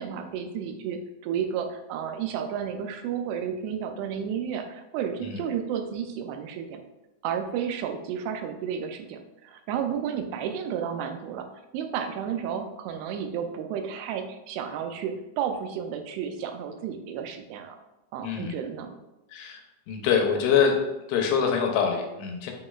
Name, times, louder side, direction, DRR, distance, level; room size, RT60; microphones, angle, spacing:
voice 1, 0.0-6.8 7.2-11.5 11.7-17.8 18.1-18.9, right 8 dB, 90° right, 6 dB, 2.6 m, -32 dB
voice 2, 18.2-18.6 19.3-19.6 19.9-20.8 21.1-22.5, left 6 dB, 85° left, 2 dB, 2.7 m, -24 dB
7.1 x 3.1 x 2.3 m, 0.97 s
omnidirectional pair, 4.6 m